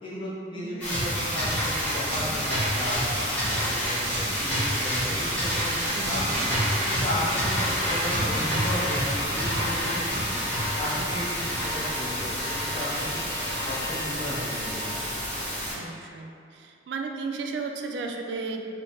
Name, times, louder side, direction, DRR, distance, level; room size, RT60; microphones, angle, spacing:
voice 1, 0.0-3.0 3.5-13.2 13.6-14.9, left 1 dB, 30° left, -8 dB, 0.6 m, -35 dB
sound 1, 0.8-15.7, equal, 10° left, 1.0 m, -28 dB
sound 2, 1.8-15.3, equal, 15° right, 0.7 m, -38 dB
sound 3, 8.4-14.8, left 2 dB, 65° left, 0.6 m, -39 dB
voice 2, 15.7-18.7, right 4 dB, 75° right, 3 dB, 0.3 m, -34 dB
3.1 x 2.1 x 4.0 m, 2.5 s
head